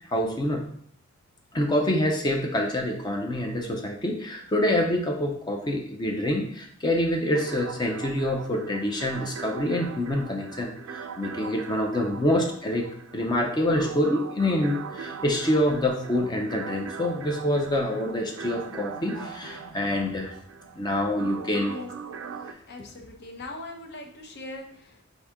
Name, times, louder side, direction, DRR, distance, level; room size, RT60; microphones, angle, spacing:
voice 1, 0.1-0.6 1.5-12.9 13.1-20.3 20.7-21.8, left 1 dB, 20° left, 2 dB, 0.5 m, -26 dB
sound 1, 7.3-22.5, right 6 dB, 70° right, 0.4 m, -40 dB
voice 2, 22.7-25.0, left 2 dB, 55° left, 3 dB, 0.7 m, -40 dB
4.8 x 2.7 x 3.5 m, 0.64 s
head